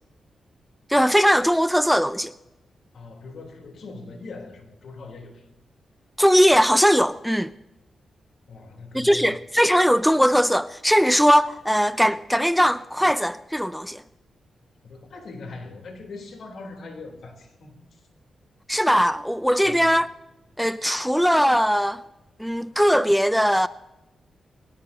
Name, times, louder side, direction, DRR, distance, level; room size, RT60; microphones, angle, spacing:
voice 1, 0.9-2.3 6.2-7.5 8.9-14.0 18.7-20.1 20.6-22.0 22.4-23.7, equal, ahead, 0.4 m, -20 dB
voice 2, 2.9-5.5 8.5-9.4 14.8-18.0 19.6-19.9, left 3 dB, 70° left, 3.7 m, -41 dB
22.0 x 18.5 x 2.9 m
cardioid pair, 95°, 0 cm